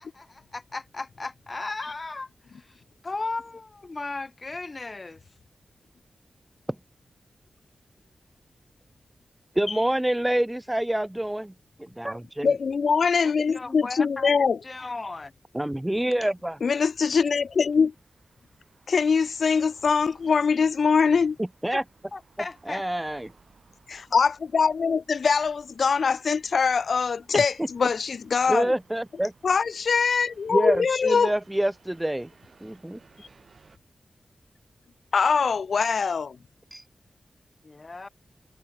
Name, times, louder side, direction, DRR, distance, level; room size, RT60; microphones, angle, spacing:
voice 1, 0.2-5.2 13.2-14.3 14.6-15.3 21.7-21.8 22.1-22.9 37.6-38.1, left 3 dB, 35° left, 1.5 m, -36 dB
voice 2, 9.6-11.5 11.8-12.5 15.5-16.6 21.6-21.8 22.7-23.3 27.3-27.4 28.5-29.3 30.5-32.3 32.6-33.0 36.7-36.8, right 1 dB, 10° right, 0.4 m, -26 dB
voice 3, 12.4-14.6 16.6-17.9 18.9-21.4 23.9-28.7 29.4-31.3 35.1-36.4, left 5 dB, 70° left, 0.4 m, -23 dB
sound 1, 16.0-33.8, right 4 dB, 55° right, 4.3 m, -60 dB
wide cardioid pair, 90°, 0 cm